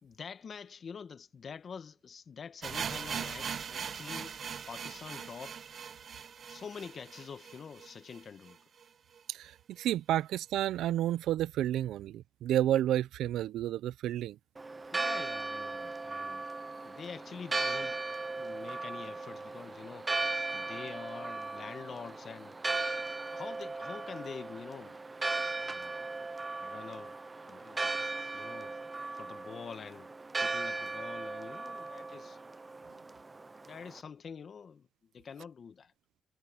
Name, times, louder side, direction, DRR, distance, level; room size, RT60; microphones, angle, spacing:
voice 1, 0.0-4.4 4.7-5.6 6.5-8.6 14.9-16.5 16.8-18.0 18.4-20.2 20.5-22.6 23.3-25.0 25.6-26.0 26.6-27.2 27.5-27.9 28.3-28.8 29.1-30.1 30.4-32.4 33.6-34.9 35.1-35.9, left 6 dB, 45° left, 1.6 m, -46 dB
sound 1, 2.6-8.5 8.8-8.9 9.1-9.2 9.8-9.9, right 7 dB, 50° right, 0.8 m, -40 dB
voice 2, 9.8-14.4, right 12 dB, 80° right, 0.5 m, -30 dB
Church bell, 14.6-34.0, right 3 dB, 25° right, 0.3 m, -37 dB
cardioid pair, 90°, 0 cm